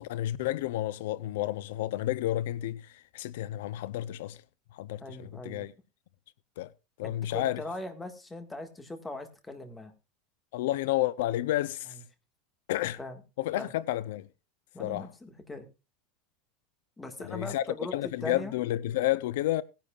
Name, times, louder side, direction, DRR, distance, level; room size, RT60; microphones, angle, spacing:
voice 1, 0.0-4.4 4.7-5.7 6.6-6.7 7.0-7.6 10.5-12.0 12.7-13.0 13.4-14.3 14.8-15.1 17.2-17.6 17.9-19.6, left 14 dB, 80° left, 0.6 m, -31 dB
voice 2, 5.0-5.7 7.0-9.9 13.0-13.2 13.5-13.7 14.7-15.7 17.0-17.9 18.2-18.5, left 2 dB, 10° left, 1.7 m, -40 dB
18.5 x 10.5 x 2.4 m
supercardioid pair, 165°, 0 cm